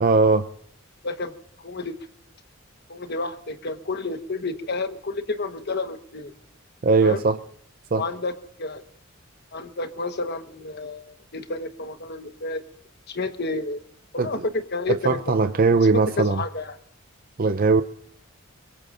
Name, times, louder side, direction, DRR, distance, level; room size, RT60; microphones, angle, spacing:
voice 1, 0.0-0.5 6.8-7.4 7.9-8.0 14.2-14.4 15.0-16.4 17.4-17.8, right 4 dB, 45° right, 10 dB, 0.5 m, -19 dB
voice 2, 1.0-2.0 2.9-6.3 7.0-7.3 7.9-8.3 8.6-8.8 9.5-12.6 13.1-13.8 14.1-15.5 15.9-16.8, left 3 dB, 50° left, 9 dB, 1.2 m, -30 dB
24.0 x 22.0 x 2.5 m, 0.65 s
head